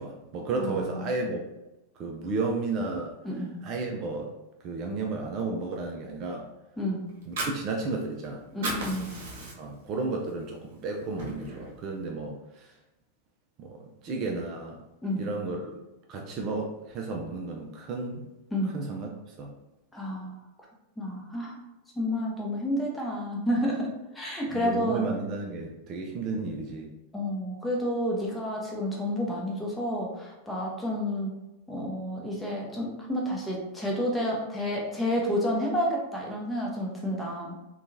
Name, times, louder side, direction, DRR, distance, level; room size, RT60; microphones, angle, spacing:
voice 1, 0.0-1.4 2.0-3.1 3.6-4.3 4.6-6.5 7.3-8.4 9.6-12.7 13.6-14.8 15.2-15.7 16.1-18.2 18.7-19.1 19.4-19.5 24.5-26.9, right 3 dB, 35° right, 1 dB, 0.4 m, -33 dB
voice 2, 0.6-1.1 3.2-3.5 6.8-7.1 8.5-9.1 15.0-15.2 18.5-18.7 19.9-20.4 21.0-21.6 22.0-23.9 24.1-25.0 27.1-31.3 31.7-37.5, equal, 10° left, -3 dB, 0.7 m, -30 dB
Fire, 7.1-8.2 8.5-9.9 10.3-10.4 10.8-11.8, right 2 dB, 55° right, 0.7 m, -35 dB
2.7 x 2.2 x 2.7 m, 0.98 s
figure-of-eight pair, 90°, 0 cm